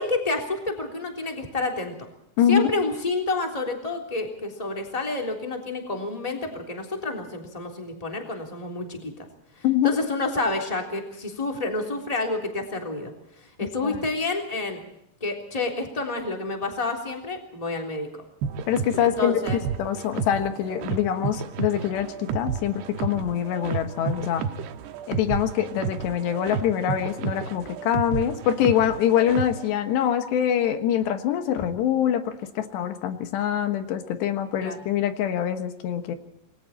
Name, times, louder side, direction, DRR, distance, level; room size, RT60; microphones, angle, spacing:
voice 1, 0.0-1.9 2.5-9.2 9.8-13.1 13.6-14.8 15.2-18.1 19.0-19.6 34.6-34.8, left 2 dB, 10° left, 2 dB, 2.9 m, -29 dB
voice 2, 2.4-2.7 9.6-9.9 13.8-14.0 18.7-19.4 19.8-24.4 25.1-36.2, left 10 dB, 85° left, 8 dB, 3.6 m, -24 dB
sound 1, 18.4-29.7, right 7 dB, 80° right, 3.0 m, -32 dB
28.0 x 21.0 x 4.4 m, 0.77 s
omnidirectional pair, 4.8 m